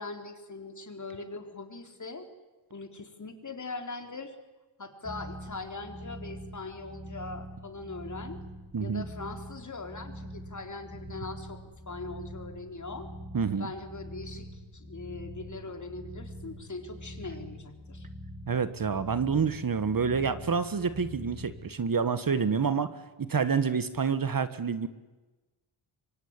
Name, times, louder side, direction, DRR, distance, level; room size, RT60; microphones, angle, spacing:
voice 1, 0.0-2.3 2.7-4.4 4.8-8.4 8.8-11.6 11.9-13.1 13.6-18.1, left 3 dB, 40° left, 6 dB, 4.2 m, -41 dB
sound 1, 5.0-21.7, equal, 5° right, 3.3 m, -44 dB
voice 2, 8.7-9.0 13.3-13.7 18.5-22.9 23.2-24.9, right 5 dB, 45° right, 13 dB, 1.6 m, -28 dB
25.5 x 23.5 x 9.9 m, 1.2 s
cardioid pair, 85°, 46 cm